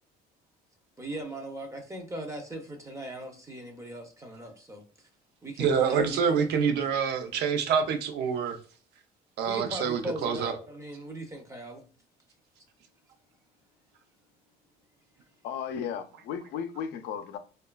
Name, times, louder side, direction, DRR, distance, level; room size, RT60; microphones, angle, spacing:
voice 1, 1.0-4.8 5.4-6.4 9.5-11.8, right 1 dB, 20° right, 0.6 m, -38 dB
voice 2, 5.6-8.6 9.4-10.5, right 6 dB, 75° right, 0.6 m, -26 dB
voice 3, 15.4-17.4, left 7 dB, 85° left, 0.4 m, -35 dB
3.0 x 2.2 x 2.2 m
cardioid pair, 110°, 17 cm